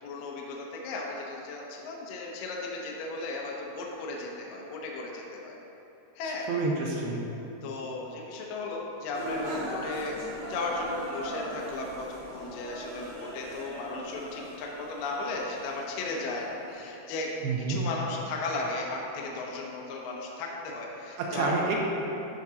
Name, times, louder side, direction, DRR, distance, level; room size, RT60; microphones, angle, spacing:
voice 1, 0.0-5.6 6.2-6.5 7.6-10.2 10.5-17.3 17.7-21.6, left 3 dB, 75° left, -2 dB, 2.1 m, -35 dB
voice 2, 6.5-7.2 17.4-17.8 21.3-21.8, right 3 dB, 80° right, -2 dB, 2.4 m, -28 dB
sound 1, 9.1-16.6, equal, 50° right, 2.5 m, -39 dB
13.0 x 5.2 x 2.8 m, 2.9 s
omnidirectional pair, 4.7 m